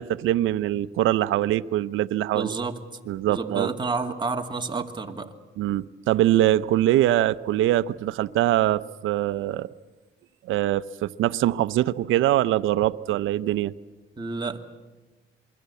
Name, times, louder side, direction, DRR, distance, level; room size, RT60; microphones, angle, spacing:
voice 1, 0.0-2.5 3.1-3.7 5.6-9.7 10.4-13.7, right 13 dB, 85° right, 0.7 m, -23 dB
voice 2, 2.3-2.8 3.3-5.3 14.2-14.6, right 4 dB, 20° right, 2.4 m, -29 dB
27.5 x 22.0 x 8.4 m
cardioid pair, 90°, 20 cm